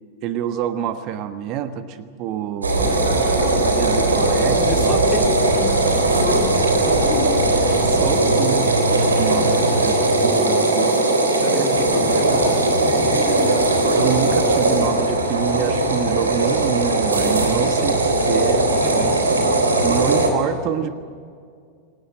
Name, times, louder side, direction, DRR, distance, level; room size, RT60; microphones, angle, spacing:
voice 1, 0.2-3.2 3.7-5.0 7.6-8.8 9.2-11.0 11.5-11.7 13.9-19.0 19.8-20.9, right 9 dB, 40° right, 10 dB, 1.4 m, -27 dB
sound 1, 2.6-20.3, right 2 dB, 75° right, 3.6 m, -18 dB
voice 2, 2.7-3.1 3.8-7.2 11.4-13.3 18.8-19.5, left 4 dB, 35° left, 4 dB, 3.1 m, -31 dB
28.0 x 18.5 x 7.7 m, 2.1 s
figure-of-eight pair, 90°, 0 cm